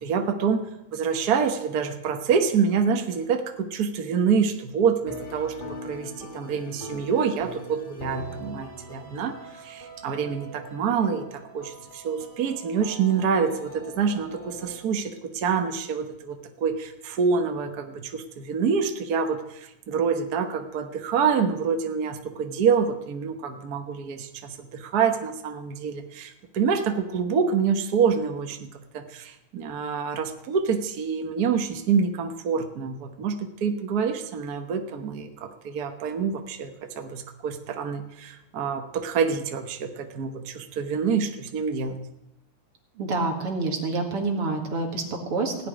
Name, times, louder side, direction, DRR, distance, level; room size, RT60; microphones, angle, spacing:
voice 1, 0.0-36.7 37.0-42.0, right 6 dB, 70° right, 5 dB, 0.9 m, -26 dB
sound 1, 5.0-14.8, right 1 dB, 25° left, 1.4 m, -42 dB
voice 2, 43.0-45.7, right 3 dB, 50° right, 2 dB, 2.7 m, -27 dB
17.0 x 6.0 x 10.0 m, 0.89 s
omnidirectional pair, 3.4 m